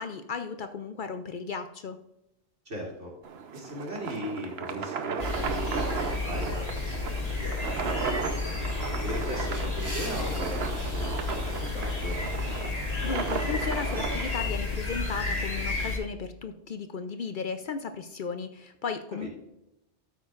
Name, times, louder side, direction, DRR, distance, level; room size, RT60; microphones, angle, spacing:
voice 1, 0.0-2.0 13.0-19.3, left 5 dB, 55° left, 8 dB, 0.6 m, -35 dB
voice 2, 2.6-3.1 3.5-12.1 19.2-19.3, equal, 85° right, -3 dB, 3.0 m, -38 dB
sound 1, 3.2-14.5, right 6 dB, 65° right, 1.0 m, -35 dB
sound 2, 5.2-16.0, left 3 dB, 35° left, 2.3 m, -32 dB
sound 3, 9.4-13.7, right 1 dB, 20° right, 2.0 m, -46 dB
12.5 x 8.5 x 2.4 m, 0.89 s
omnidirectional pair, 1.2 m